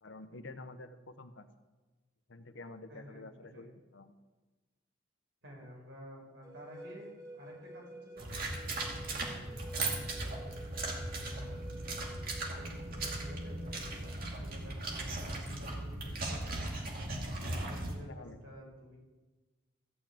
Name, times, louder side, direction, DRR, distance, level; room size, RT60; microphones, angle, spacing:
voice 1, 0.0-1.5 2.3-4.1 18.0-18.4, left 2 dB, 70° left, 9 dB, 0.9 m, -49 dB
voice 2, 2.9-3.7 5.4-9.6 10.1-11.6 11.8-14.0 14.4-15.3 15.6-16.7 17.3-19.0, equal, 70° right, -2 dB, 5.6 m, -52 dB
sound 1, 6.4-14.2, equal, 20° right, 2.6 m, -50 dB
sound 2, 8.2-17.9, right 2 dB, 50° right, 2.2 m, -38 dB
14.5 x 6.1 x 8.6 m, 1.2 s
head